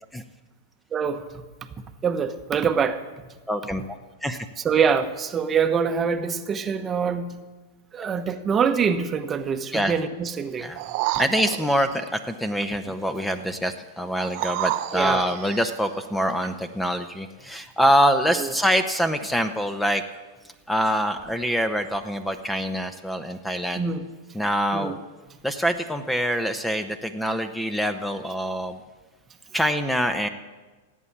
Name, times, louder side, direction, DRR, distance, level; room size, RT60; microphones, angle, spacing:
voice 1, 0.9-1.2 2.0-3.0 4.6-7.4 7.9-10.7 14.9-15.2 18.3-18.5 23.8-24.0 24.7-24.9, right 6 dB, 25° right, 8 dB, 1.0 m, -24 dB
voice 2, 3.5-3.8 4.2-4.5 9.7-9.9 10.6-10.8 11.2-20.0 20.7-23.8 24.3-25.0 25.4-28.8 29.5-30.3, equal, 5° left, 10 dB, 0.9 m, -25 dB
sound 1, 10.7-12.1 14.2-15.8 16.4-16.5, right 16 dB, 50° right, 0.7 m, -30 dB
16.5 x 8.5 x 7.3 m, 1.3 s
hypercardioid pair, 105°, 0 cm